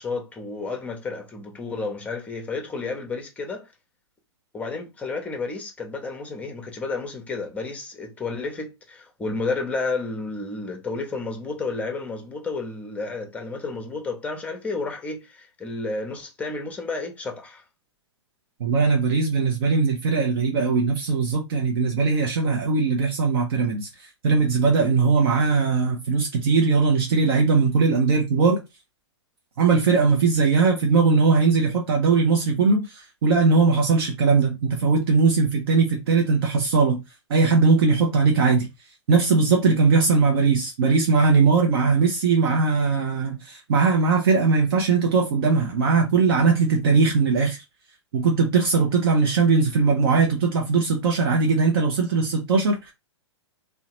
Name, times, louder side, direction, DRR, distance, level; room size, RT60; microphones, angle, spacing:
voice 1, 0.0-3.7 4.5-17.6, left 3 dB, 10° left, 0.7 m, -31 dB
voice 2, 18.6-28.6 29.6-37.0 37.3-38.7 39.1-47.6 48.1-52.9, right 4 dB, 55° right, 0.6 m, -20 dB
2.7 x 2.1 x 2.9 m
figure-of-eight pair, 110°, 15 cm